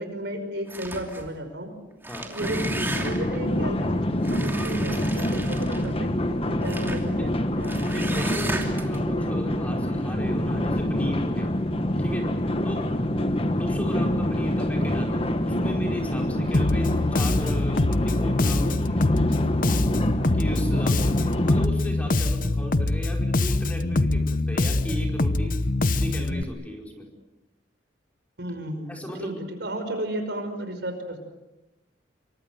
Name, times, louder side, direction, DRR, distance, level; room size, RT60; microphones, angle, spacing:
voice 1, 0.0-1.7 2.3-8.0 13.0-13.1 20.7-21.0 28.4-28.9 29.2-31.2, right 1 dB, 65° right, 7 dB, 5.3 m, -34 dB
sound 1, 0.7-1.3 1.9-3.4 4.2-6.0 6.6-7.1 7.6-9.0, right 2 dB, 10° right, 2.9 m, -35 dB
sound 2, 2.4-21.7, left 1 dB, 30° left, 1.5 m, -26 dB
voice 2, 7.9-11.5 12.0-12.3 12.6-12.8 13.5-19.1 20.3-27.1 28.9-29.4, equal, 10° left, 1 dB, 5.0 m, -35 dB
Bass guitar, 16.5-26.4, left 2 dB, 45° left, 0.9 m, -24 dB
27.0 x 24.0 x 7.9 m, 1.0 s
head